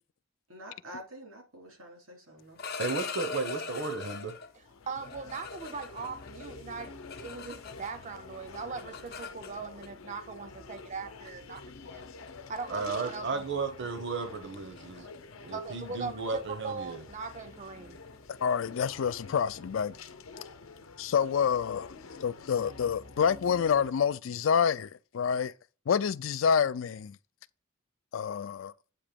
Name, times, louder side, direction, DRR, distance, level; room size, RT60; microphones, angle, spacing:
voice 1, 0.5-2.6, right 1 dB, 85° right, 2.7 m, -47 dB
sound 1, 2.4-4.5 5.0-8.1 8.3-9.9 10.8-10.9 11.3-11.6 12.0-12.3 12.6-12.9 13.2-13.4 13.7-19.1, left 5 dB, 50° left, 0.7 m, -42 dB
voice 2, 2.8-4.4 12.7-15.1 15.4-17.0, right 4 dB, 60° right, 0.8 m, -34 dB
sound 2, 4.2-23.9, left 4 dB, 85° left, 0.8 m, -48 dB
voice 3, 4.9-12.1 12.5-13.4 15.5-18.0, right 4 dB, 35° right, 0.4 m, -40 dB
voice 4, 18.4-19.9 21.0-21.9 22.2-25.5 25.9-27.2 28.1-28.7, left 7 dB, 65° left, 0.4 m, -27 dB
8.5 x 2.9 x 5.1 m
head